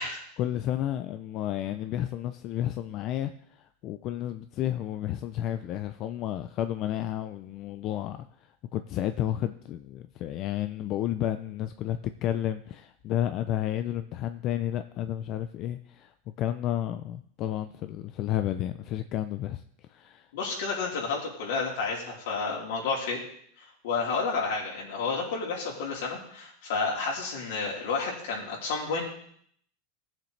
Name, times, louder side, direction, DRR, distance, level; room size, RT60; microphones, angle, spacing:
voice 1, 0.4-16.1 16.4-19.6 19.9-20.3, left 12 dB, 40° left, 9 dB, 0.5 m, -31 dB
voice 2, 20.3-23.2 23.6-29.0, left 4 dB, 75° left, -3 dB, 3.9 m, -31 dB
16.5 x 7.3 x 3.3 m, 0.65 s
supercardioid pair, 145°, 0 cm